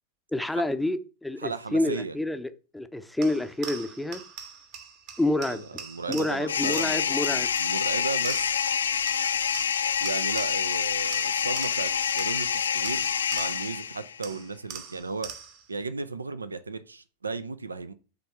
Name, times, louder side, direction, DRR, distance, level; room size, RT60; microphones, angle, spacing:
voice 1, 0.3-4.2 5.2-5.7 6.1-7.5, left 1 dB, 5° left, 0.7 m, -28 dB
voice 2, 1.4-2.2 5.5-8.6 10.0-15.3 15.7-17.9, right 4 dB, 75° right, 0.5 m, -35 dB
sound 1, 3.2-8.8 9.1-10.8 11.1-13.8 14.2-15.7, right 7 dB, 45° right, 1.3 m, -43 dB
sound 2, 6.5-14.2, left 7 dB, 70° left, 0.4 m, -27 dB
7.5 x 3.5 x 5.8 m
figure-of-eight pair, 90°, 0 cm